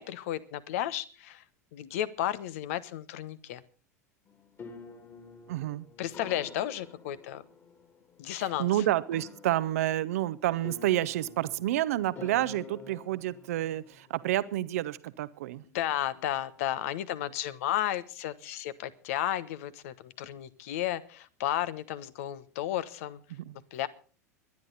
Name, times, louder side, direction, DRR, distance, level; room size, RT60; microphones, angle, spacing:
voice 1, 0.0-1.4 1.7-3.6 6.0-7.4 8.2-8.7 15.7-23.2 23.7-23.9, left 12 dB, 55° left, 16 dB, 1.1 m, -33 dB
sound 1, 4.3-14.8, left 5 dB, 30° left, 3.0 m, -49 dB
voice 2, 5.5-5.8 8.6-15.6 23.3-23.6, right 14 dB, 60° right, 16 dB, 0.8 m, -29 dB
23.0 x 11.0 x 4.1 m, 0.39 s
figure-of-eight pair, 80°, 9 cm